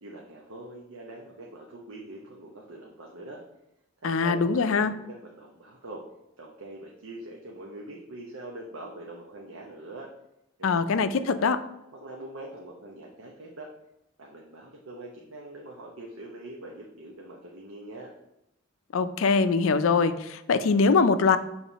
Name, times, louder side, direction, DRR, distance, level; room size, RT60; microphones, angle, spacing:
voice 1, 0.0-3.4 4.0-6.0 6.4-10.1 10.6-11.4 11.9-13.7 14.2-18.1, right 2 dB, 80° right, -1 dB, 0.9 m, -43 dB
voice 2, 4.0-4.9 10.6-11.6 18.9-21.4, left 4 dB, 70° left, 11 dB, 0.4 m, -23 dB
7.3 x 3.2 x 4.0 m, 0.89 s
head